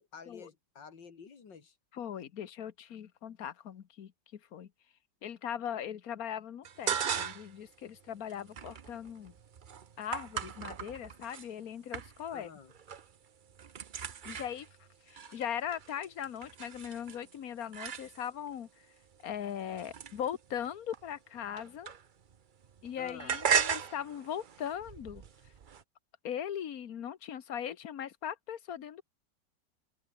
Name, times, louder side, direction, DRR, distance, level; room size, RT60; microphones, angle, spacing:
voice 1, 0.0-1.7 12.3-12.7 23.0-23.4, left 6 dB, 70° left, 3.2 m, -50 dB
voice 2, 1.9-4.7 5.2-9.3 10.0-12.5 14.2-14.7 15.1-18.7 19.2-21.9 22.8-25.2 26.2-29.0, left 9 dB, 55° left, 1.5 m, -39 dB
sound 1, 6.6-7.6 8.0-11.5 11.9-12.4 12.7-13.2 13.4-18.5 19.1-22.4 22.6-25.8, right 7 dB, 80° right, 0.4 m, -37 dB
open air
omnidirectional pair, 2.0 m